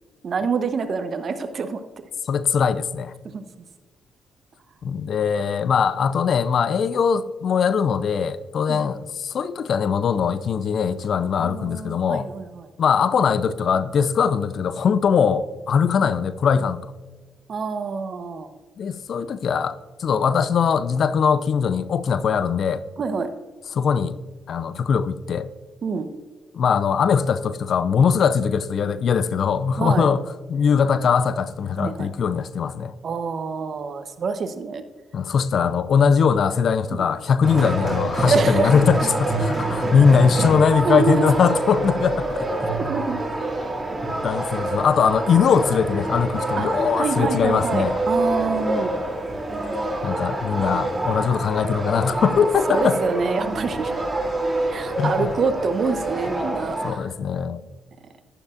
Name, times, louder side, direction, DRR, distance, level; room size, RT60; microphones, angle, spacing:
voice 1, 0.2-1.8 3.3-3.4 8.7-8.8 11.4-12.7 16.0-16.1 17.5-18.5 23.0-23.3 25.8-26.1 29.8-30.1 31.8-32.1 33.0-34.8 36.9-37.1 38.3-38.7 40.8-41.3 42.9-43.2 46.6-48.9 52.7-53.9 54.7-57.1, right 5 dB, 55° right, 0.9 m, -26 dB
voice 2, 2.3-3.1 4.8-12.3 12.8-16.8 18.8-22.8 23.7-24.2 24.5-25.5 26.5-30.2 30.5-32.9 35.1-42.7 44.2-47.9 50.0-53.0 55.0-55.3 56.8-57.6, left 6 dB, 60° left, 0.5 m, -21 dB
sound 1, 37.4-56.9, right 2 dB, 20° right, 2.8 m, -26 dB
11.5 x 9.9 x 2.5 m
hypercardioid pair, 50°, 0 cm